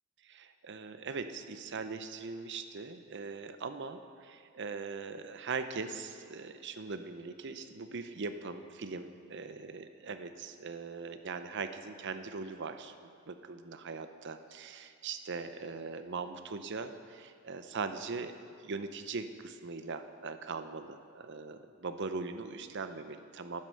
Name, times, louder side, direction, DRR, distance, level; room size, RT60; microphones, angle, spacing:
voice 1, 0.2-12.9 13.3-18.3 18.6-23.6, right 4 dB, 55° right, 9 dB, 0.6 m, -40 dB
11.0 x 9.9 x 6.4 m, 2.3 s
head